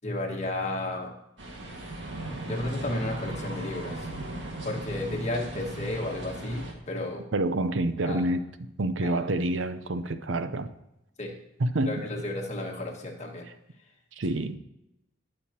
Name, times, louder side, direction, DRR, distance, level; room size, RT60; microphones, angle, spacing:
voice 1, 0.0-1.1 2.5-4.1 4.6-7.2 8.0-8.2 9.0-9.2 11.2-11.4 11.8-13.5, left 1 dB, 35° left, 0 dB, 1.7 m, -32 dB
sound 1, 1.4-6.7, right 2 dB, 70° right, 1.8 m, -38 dB
voice 2, 7.3-8.4 8.8-10.7 11.6-12.0 14.2-14.6, right 1 dB, 85° right, 11 dB, 0.7 m, -27 dB
19.5 x 6.6 x 2.9 m, 0.87 s
head